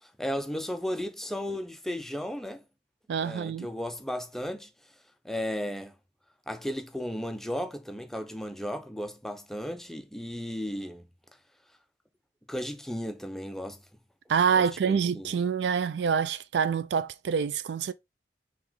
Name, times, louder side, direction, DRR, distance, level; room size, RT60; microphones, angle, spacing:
voice 1, 0.0-2.6 3.2-4.7 5.2-5.9 6.5-11.0 12.5-13.8 14.6-15.4, equal, ahead, 0.4 m, -35 dB
voice 2, 3.1-3.7 14.3-17.9, right 6 dB, 70° right, 0.4 m, -26 dB
3.7 x 3.1 x 4.7 m
head